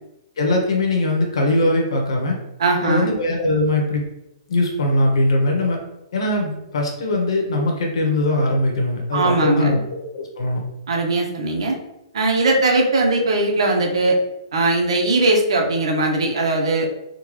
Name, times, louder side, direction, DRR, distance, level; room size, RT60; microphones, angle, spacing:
voice 1, 0.4-2.4 2.8-4.0 4.5-5.8 6.1-10.6, left 1 dB, 70° left, 1 dB, 1.0 m, -21 dB
voice 2, 2.6-3.1 9.1-9.8 10.9-11.8 12.1-14.2 14.5-16.9, right 2 dB, 75° right, 0 dB, 0.8 m, -19 dB
3.7 x 2.2 x 3.1 m, 0.89 s
hypercardioid pair, 175°, 3 cm